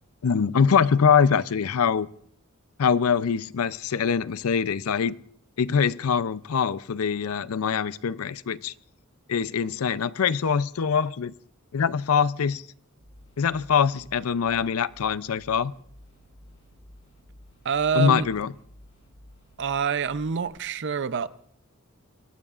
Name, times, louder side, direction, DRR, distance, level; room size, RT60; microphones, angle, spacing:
voice 1, 0.2-2.1 2.8-5.2 5.6-8.7 9.3-11.3 11.7-12.6 13.4-15.7 17.9-18.5, left 6 dB, 85° left, 0.5 m, -23 dB
sound 1, 13.0-20.5, left 1 dB, 65° left, 6.9 m, -52 dB
voice 2, 17.6-18.3 19.6-21.3, right 6 dB, 55° right, 0.6 m, -26 dB
23.5 x 17.5 x 2.5 m
head